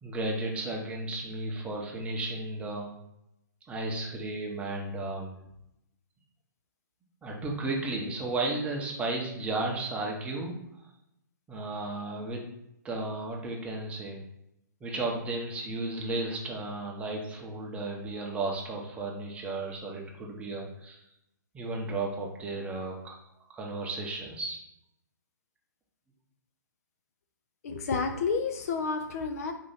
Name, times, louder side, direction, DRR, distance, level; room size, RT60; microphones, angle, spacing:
voice 1, 0.0-2.9 3.7-5.3 7.2-10.6 11.5-12.4 12.8-14.2 14.8-21.0 21.5-23.2 23.5-24.6, right 2 dB, 10° right, -1 dB, 0.8 m, -34 dB
voice 2, 27.6-29.5, left 5 dB, 50° left, 6 dB, 0.5 m, -30 dB
4.4 x 2.7 x 4.0 m, 0.84 s
figure-of-eight pair, 125°, 10 cm